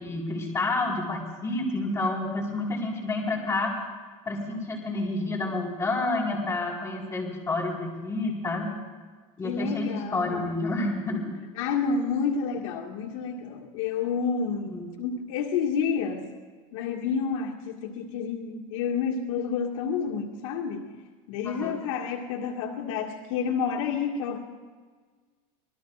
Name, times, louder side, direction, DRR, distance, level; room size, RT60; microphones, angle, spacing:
voice 1, 0.0-3.7 4.3-8.7 9.4-11.3 14.7-14.9 21.4-21.8, left 2 dB, 15° left, -1 dB, 4.6 m, -29 dB
voice 2, 9.4-10.5 11.6-16.3 16.7-20.9 21.3-24.4, left 6 dB, 70° left, 0 dB, 1.9 m, -29 dB
26.5 x 20.0 x 2.5 m, 1.5 s
supercardioid pair, 145°, 17 cm